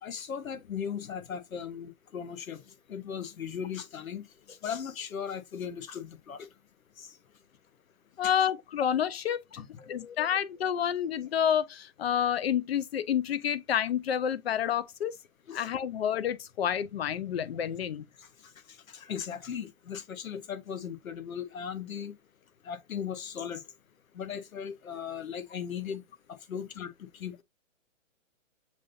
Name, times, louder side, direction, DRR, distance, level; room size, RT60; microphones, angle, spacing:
voice 1, 0.0-6.5 7.0-7.2 8.2-8.3 9.6-10.2 15.5-15.7 18.2-18.3 18.7-22.2 22.6-23.6 24.1-26.0 26.5-27.3, left 7 dB, 85° left, 1.0 m, -38 dB
voice 2, 8.2-9.4 9.9-15.1 15.5-18.0, left 9 dB, 50° left, 0.5 m, -29 dB
7.3 x 2.7 x 2.5 m
hypercardioid pair, 160°, 40 cm